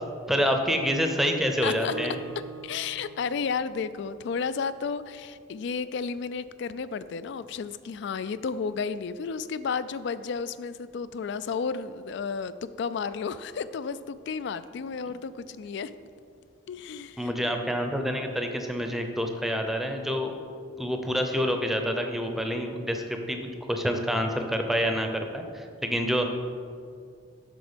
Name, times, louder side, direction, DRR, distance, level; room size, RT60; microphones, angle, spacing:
voice 1, 0.3-2.2 17.2-20.3 20.8-26.4, equal, ahead, 4 dB, 0.6 m, -27 dB
voice 2, 1.6-1.9 2.6-15.9 16.7-17.4, left 5 dB, 60° left, 14 dB, 0.3 m, -32 dB
Acoustic guitar, 1.9-4.7, right 6 dB, 75° right, 0.4 m, -44 dB
8.2 x 6.1 x 5.1 m, 2.3 s
head